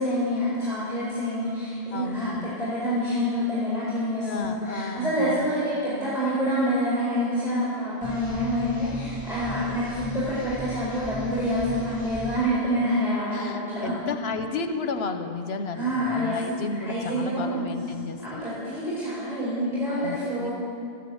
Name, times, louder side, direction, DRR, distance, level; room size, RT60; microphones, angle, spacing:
voice 1, 0.0-14.0 15.7-16.4 16.7-17.6 18.2-20.5, equal, ahead, -11 dB, 4.5 m, -27 dB
voice 2, 1.9-2.5 4.2-5.5 13.3-18.4 20.0-20.5, left 4 dB, 80° left, 7 dB, 1.1 m, -33 dB
sound 1, 8.0-12.4, right 4 dB, 20° left, 5.2 m, -37 dB
14.0 x 10.5 x 7.9 m, 2.4 s
omnidirectional pair, 1.0 m